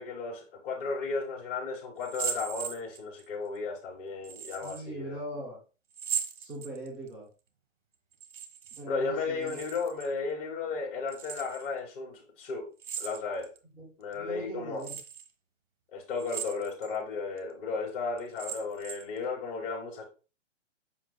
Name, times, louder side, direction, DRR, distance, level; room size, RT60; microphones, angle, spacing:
voice 1, 0.0-5.2 8.9-12.7 13.0-13.5 14.0-14.8 15.9-20.0, left 4 dB, 50° left, 3.5 m, -34 dB
metal chain, 2.0-3.2 4.2-4.8 5.9-7.1 8.1-8.8 9.1-10.1 11.1-11.7 12.8-13.6 14.1-14.2 14.8-15.3 16.1-16.9 17.4-17.5 18.2-19.2, right 7 dB, 70° right, 1.5 m, -38 dB
voice 2, 4.6-5.6 6.4-7.3 8.7-9.6 13.7-15.0, right 1 dB, 5° right, 0.4 m, -41 dB
7.5 x 5.7 x 2.2 m
hypercardioid pair, 135°, 37 cm